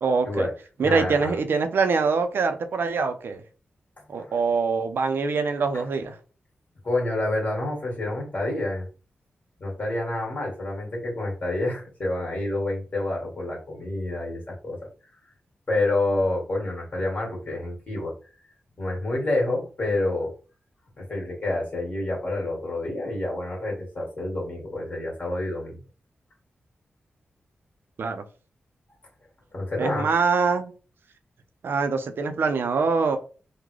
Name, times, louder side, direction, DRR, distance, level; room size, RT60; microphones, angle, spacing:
voice 1, 0.0-0.5 0.8-3.4 4.1-6.2 28.0-28.2 29.8-30.7 31.6-33.2, right 4 dB, 70° right, 0.5 m, -24 dB
voice 2, 0.8-1.4 4.1-4.3 5.7-5.8 6.8-8.9 9.6-14.8 15.7-18.1 18.8-20.3 21.0-25.8 29.5-30.1, left 2 dB, 40° left, 1.9 m, -28 dB
3.7 x 2.2 x 3.1 m
wide cardioid pair, 100°, 4 cm